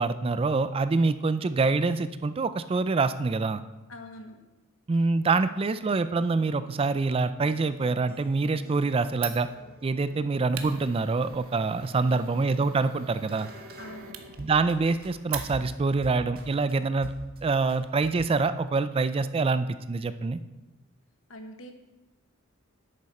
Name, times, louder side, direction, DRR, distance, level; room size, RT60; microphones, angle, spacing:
voice 1, 0.0-3.6 4.9-9.5 9.8-13.5 14.4-17.1 17.4-20.4, right 3 dB, 25° right, 13 dB, 0.3 m, -25 dB
voice 2, 3.9-4.4 13.8-14.2 21.3-21.7, left 1 dB, 65° left, 5 dB, 1.2 m, -44 dB
sound 1, 5.0-14.7 15.0-16.7 17.0-17.4 17.7-18.5, right 1 dB, 45° right, 1.5 m, -48 dB
Fire, 9.1-15.9, right 9 dB, 75° right, 0.9 m, -43 dB
10.5 x 8.5 x 4.2 m, 1.1 s
head